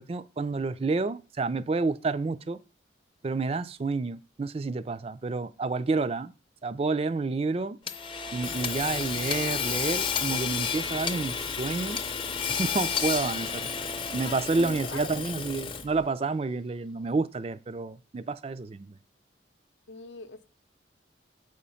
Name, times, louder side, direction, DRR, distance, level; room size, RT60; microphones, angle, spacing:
voice 1, 0.0-2.6 3.2-6.3 6.6-7.8 8.3-12.0 12.6-13.7 14.1-19.0, right 3 dB, 30° right, 0.3 m, -29 dB
Hammer / Sawing, 7.9-16.0, left 6 dB, 25° left, 0.5 m, -31 dB
voice 2, 14.5-15.0 19.9-20.5, left 3 dB, 70° left, 0.7 m, -42 dB
7.5 x 5.1 x 5.6 m
head